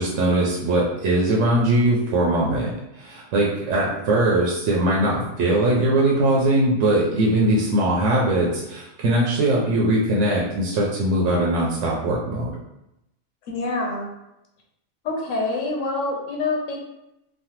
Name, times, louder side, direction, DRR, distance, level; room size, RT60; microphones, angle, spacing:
voice 1, 0.0-2.7 3.0-12.5, right 1 dB, 80° right, -3 dB, 0.9 m, -21 dB
voice 2, 13.4-14.1 15.0-16.8, left 3 dB, 90° left, 0 dB, 1.1 m, -26 dB
3.2 x 2.1 x 2.8 m, 0.88 s
omnidirectional pair, 1.3 m